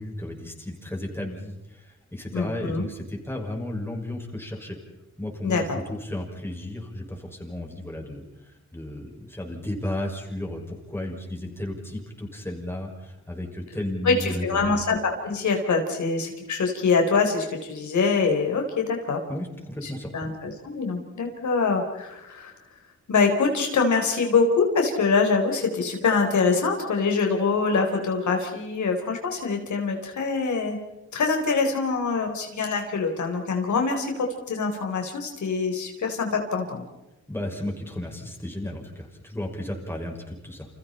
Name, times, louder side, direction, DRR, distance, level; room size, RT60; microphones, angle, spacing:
voice 1, 0.0-4.8 5.2-14.8 19.3-20.1 37.3-40.7, left 1 dB, 10° left, 0 dB, 6.2 m, -34 dB
voice 2, 2.3-2.9 5.4-5.8 14.0-19.2 19.8-22.5 23.1-30.8 31.1-36.8, left 4 dB, 75° left, 3 dB, 4.1 m, -24 dB
30.0 x 28.0 x 4.4 m, 1.0 s
wide cardioid pair, 110°, 29 cm